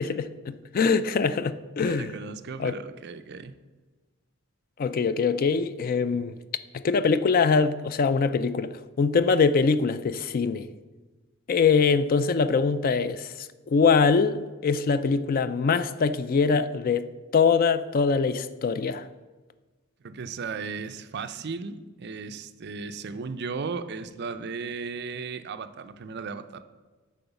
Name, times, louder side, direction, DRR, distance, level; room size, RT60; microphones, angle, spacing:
voice 1, 0.0-2.1 2.6-2.8 4.8-6.3 6.7-10.7 11.5-17.1 17.3-19.1, left 5 dB, 40° left, 0.3 m, -23 dB
voice 2, 1.8-3.6 20.0-26.6, right 4 dB, 50° right, 0.5 m, -36 dB
9.2 x 3.9 x 6.9 m
head